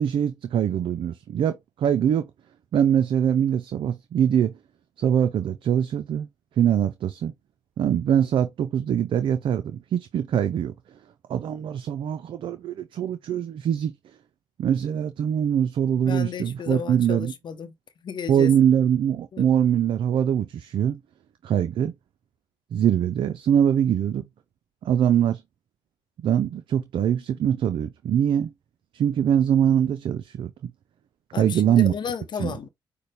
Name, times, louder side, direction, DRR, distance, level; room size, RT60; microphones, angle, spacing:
voice 1, 0.0-2.3 2.7-4.5 5.0-6.3 6.6-7.3 7.8-10.7 11.3-13.9 14.6-17.3 18.3-21.0 21.4-21.9 22.7-24.2 24.8-25.4 26.2-28.5 28.9-30.7 31.4-31.9 32.4-32.5, right 9 dB, 70° right, 0.5 m, -23 dB
voice 2, 16.1-17.7 18.0-18.5 19.3-19.5 31.3-32.7, left 7 dB, 60° left, 0.8 m, -33 dB
6.7 x 2.3 x 3.3 m
supercardioid pair, 55°, 9 cm